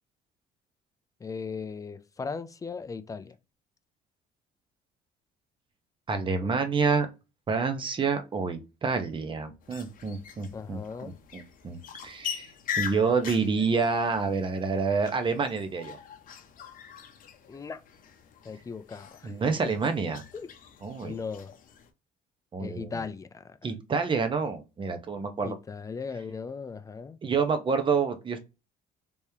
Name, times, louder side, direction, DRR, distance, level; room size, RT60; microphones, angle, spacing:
voice 1, 1.2-3.3 10.5-11.2 17.5-17.8 18.4-19.3 19.6-19.9 20.3-20.5 21.0-21.5 22.6-23.6 25.4-27.2, left 5 dB, 20° left, 0.4 m, -38 dB
voice 2, 6.1-7.1 7.5-12.5 12.8-16.0 19.2-20.2 20.8-21.2 22.5-22.9 23.6-25.6 27.2-28.4, right 5 dB, 30° right, 0.7 m, -28 dB
sound 1, 9.6-21.9, left 8 dB, 55° left, 0.6 m, -42 dB
3.5 x 3.1 x 2.7 m
cardioid pair, 110°, 17 cm